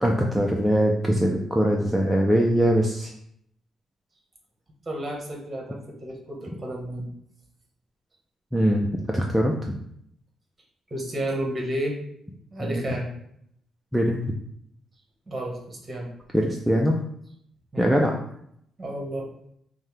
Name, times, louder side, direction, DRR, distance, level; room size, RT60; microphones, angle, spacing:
voice 1, 0.0-3.1 8.5-8.9 9.1-9.8 12.6-12.8 13.9-14.2 16.3-17.0 17.8-18.1, equal, ahead, 0 dB, 0.4 m, -22 dB
voice 2, 4.8-7.1 10.9-12.0 12.5-13.1 15.3-16.1 17.7-17.9 18.8-19.3, right 1 dB, 30° right, 0 dB, 1.3 m, -32 dB
5.3 x 2.2 x 3.3 m, 0.72 s
cardioid pair, 90°, 0 cm